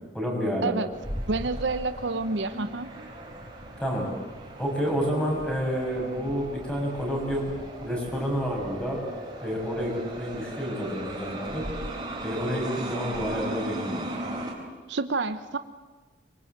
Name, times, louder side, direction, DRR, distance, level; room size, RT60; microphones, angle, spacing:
voice 1, 0.1-0.8 3.8-4.1 4.6-7.5 7.8-9.0 9.4-11.6 12.2-14.0, equal, 5° left, -1 dB, 6.5 m, -29 dB
sound 1, 0.9-14.5, right 1 dB, 20° right, 4.3 m, -37 dB
voice 2, 1.3-2.9 14.9-15.6, right 3 dB, 65° right, 11 dB, 0.8 m, -28 dB
25.0 x 23.5 x 8.1 m, 1.3 s
head